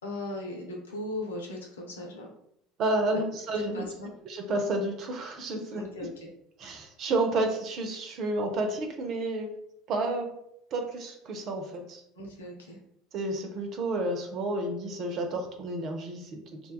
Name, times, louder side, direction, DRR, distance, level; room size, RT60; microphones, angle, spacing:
voice 1, 0.0-2.3 3.7-4.1 5.7-6.3 12.2-12.8, left 1 dB, 75° left, 0 dB, 0.6 m, -38 dB
voice 2, 2.8-3.9 4.3-5.8 6.6-9.5 9.9-10.3 10.7-12.0 13.1-16.7, right 2 dB, 45° right, 4 dB, 0.5 m, -30 dB
2.9 x 2.2 x 2.3 m, 0.74 s
figure-of-eight pair, 70°, 0 cm